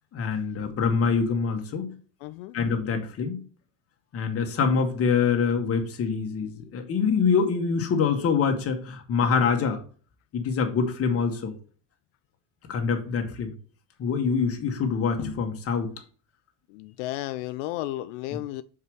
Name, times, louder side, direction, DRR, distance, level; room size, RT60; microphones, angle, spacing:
voice 1, 0.1-1.9 2.5-3.4 4.1-9.8 10.3-11.5 12.7-13.5 14.0-15.9, left 5 dB, 40° left, 1.7 m, -25 dB
voice 2, 2.2-2.6 16.7-18.6, left 16 dB, 90° left, 0.5 m, -33 dB
5.5 x 4.8 x 6.3 m
cardioid pair, 120°, 36 cm